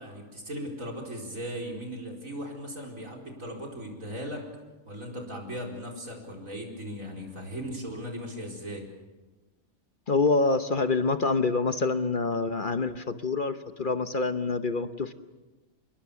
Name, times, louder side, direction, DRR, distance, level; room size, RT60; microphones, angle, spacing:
voice 1, 0.0-4.5 4.9-8.8, equal, 85° right, 0 dB, 5.0 m, -38 dB
voice 2, 10.1-15.1, left 3 dB, 45° left, 10 dB, 1.0 m, -26 dB
27.5 x 21.5 x 7.0 m, 1.1 s
omnidirectional pair, 1.4 m